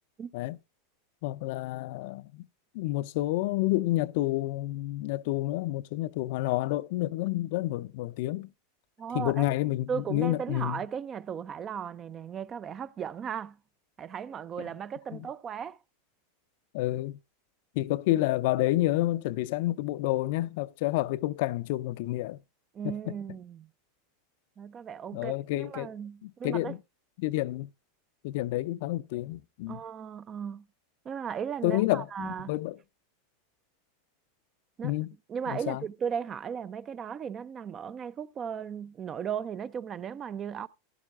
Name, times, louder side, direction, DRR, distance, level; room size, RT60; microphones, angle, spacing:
voice 1, 1.2-2.5 2.7-8.5 9.1-10.8 15.1-15.2 16.7-17.2 17.8-22.4 23.1-23.2 25.1-25.9 26.2-26.8 27.2-27.7 28.2-29.8 31.6-32.8 34.8-35.1 35.5-35.8, left 17 dB, 65° left, 0.5 m, -29 dB
voice 2, 9.0-9.5 9.9-13.6 14.0-15.8 22.7-23.7 24.6-26.7 29.7-30.7 31.0-32.5 34.8-34.9 35.3-40.7, right 7 dB, 30° right, 0.5 m, -36 dB
15.0 x 11.0 x 2.4 m
supercardioid pair, 125°, 0 cm